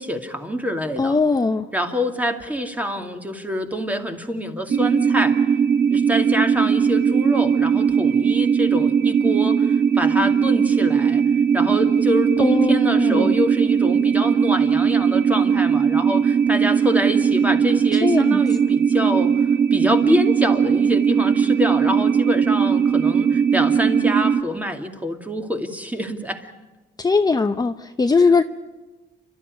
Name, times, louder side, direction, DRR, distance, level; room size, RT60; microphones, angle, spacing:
voice 1, 0.0-1.2 1.7-5.4 5.9-11.2 11.5-19.3 19.7-26.5, equal, 10° right, 5 dB, 2.6 m, -26 dB
voice 2, 1.0-1.6 12.4-13.3 18.0-18.4 27.0-28.4, left 4 dB, 20° left, 8 dB, 0.8 m, -19 dB
sound 1, 4.7-24.4, right 7 dB, 50° right, 1.5 m, -19 dB
29.5 x 13.0 x 9.5 m, 1.2 s
cardioid pair, 90°, 20 cm